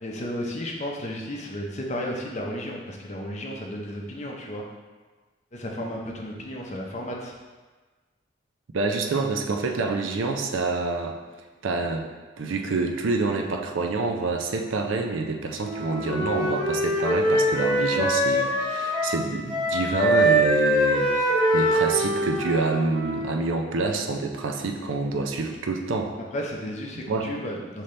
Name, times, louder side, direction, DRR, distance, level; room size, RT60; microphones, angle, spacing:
voice 1, 0.0-4.6 5.5-7.3 26.3-27.8, equal, 35° left, -1 dB, 0.6 m, -33 dB
voice 2, 8.7-11.1 11.6-12.0 12.4-26.2 27.1-27.3, right 3 dB, 80° right, 4 dB, 0.5 m, -27 dB
Wind instrument woodwind instrument, 15.6-19.2 19.5-23.4, equal, 20° right, 1.3 m, -23 dB
5.3 x 2.8 x 3.2 m, 1.3 s
head